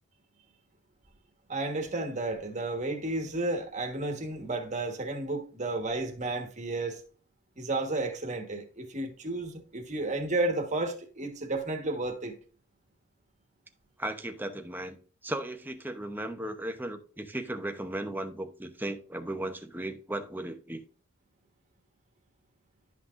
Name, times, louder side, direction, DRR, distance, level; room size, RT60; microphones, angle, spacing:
voice 1, 1.5-7.0 7.6-12.3, right 2 dB, 35° right, 1.3 m, -32 dB
voice 2, 14.0-15.0 15.2-20.8, right 1 dB, 10° right, 0.7 m, -36 dB
11.5 x 5.9 x 2.5 m
head